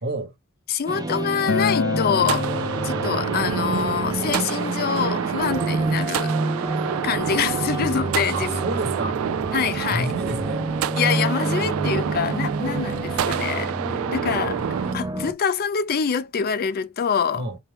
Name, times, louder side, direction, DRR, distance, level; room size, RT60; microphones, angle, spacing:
voice 1, 0.0-0.3 8.3-9.2 9.9-10.6 17.3-17.6, right 2 dB, 50° right, 1.2 m, -29 dB
voice 2, 0.7-2.5 2.8-6.4 6.7-8.6 9.5-10.1 11.0-14.6 14.9-17.4, left 7 dB, 45° left, 0.4 m, -25 dB
sound 1, 0.9-15.3, right 2 dB, 20° right, 0.6 m, -29 dB
Acoustic guitar, 1.5-6.7, left 4 dB, 85° left, 0.6 m, -30 dB
sound 2, 2.2-14.9, right 8 dB, 80° right, 0.3 m, -28 dB
4.4 x 2.2 x 3.4 m
head